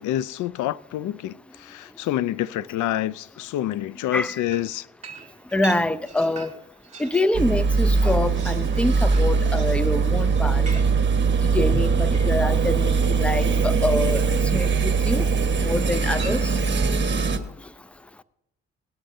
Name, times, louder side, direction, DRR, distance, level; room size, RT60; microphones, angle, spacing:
voice 1, 0.0-4.9, left 13 dB, 75° left, 0.5 m, -27 dB
sound 1, 4.5-7.4 7.8-12.8 13.9-14.5 15.8-16.8, right 4 dB, 25° right, 3.3 m, -43 dB
voice 2, 5.5-6.5 7.0-10.6 11.4-15.3 15.6-16.5, left 2 dB, 5° left, 0.6 m, -25 dB
sound 2, 7.3-17.4, right 5 dB, 40° right, 1.4 m, -21 dB
19.0 x 11.5 x 2.7 m
cardioid pair, 90°, 30 cm